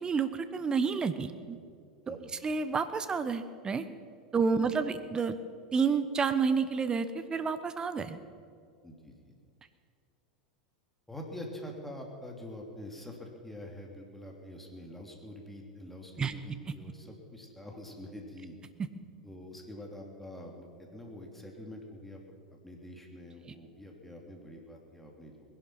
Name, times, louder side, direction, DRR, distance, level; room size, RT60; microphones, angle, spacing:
voice 1, 0.0-1.6 2.1-3.8 4.3-5.4 5.7-8.2 16.2-16.3, right 5 dB, 20° right, 11 dB, 1.0 m, -30 dB
voice 2, 4.3-4.7 8.8-9.3 11.1-18.5 19.2-22.2 22.6-25.3, left 1 dB, 5° left, 0 dB, 2.9 m, -46 dB
20.5 x 11.0 x 5.9 m, 2.3 s
figure-of-eight pair, 85°, 4 cm